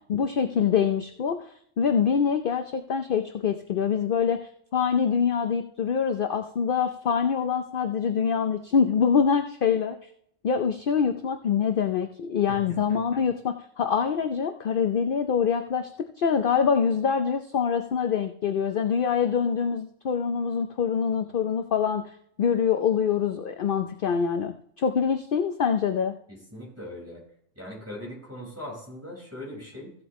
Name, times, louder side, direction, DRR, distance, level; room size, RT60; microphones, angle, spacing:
voice 1, 0.1-4.4 4.7-10.0 10.4-15.9 16.2-26.1, left 7 dB, 55° left, 7 dB, 0.7 m, -25 dB
voice 2, 12.5-13.0 26.3-27.2 27.5-29.9, left 1 dB, 10° right, -4 dB, 5.1 m, -40 dB
15.5 x 7.9 x 3.1 m, 0.67 s
omnidirectional pair, 1.3 m